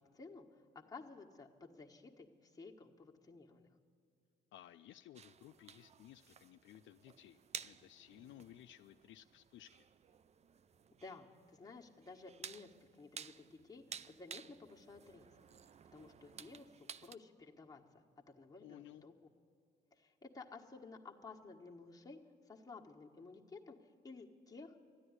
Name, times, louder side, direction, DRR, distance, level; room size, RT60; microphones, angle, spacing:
voice 1, 0.0-3.7 11.0-15.3 15.9-18.0 18.4-19.1 19.9-22.2 22.5-23.8 24.0-24.7, left 3 dB, 20° left, 0 dB, 1.4 m, -54 dB
voice 2, 4.5-9.9 18.6-19.0, left 12 dB, 70° left, 9 dB, 0.4 m, -58 dB
sound 1, 5.1-17.2, right 7 dB, 35° right, 0.4 m, -54 dB
13.5 x 9.7 x 9.6 m, 2.4 s
cardioid pair, 90°, 20 cm